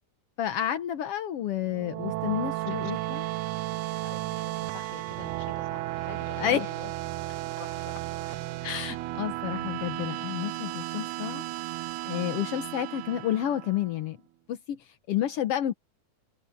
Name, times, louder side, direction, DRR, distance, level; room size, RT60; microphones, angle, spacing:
voice 1, 0.4-3.3 6.4-6.7 8.6-11.4 12.1-14.2 14.5-14.8 15.1-15.7, left 11 dB, 85° left, 1.3 m, -30 dB
sound 1, 1.6-14.0, right 18 dB, 85° right, 1.7 m, -34 dB
voice 2, 3.9-6.9 7.6-8.7, left 7 dB, 45° left, 1.0 m, -47 dB
omnidirectional pair, 4.2 m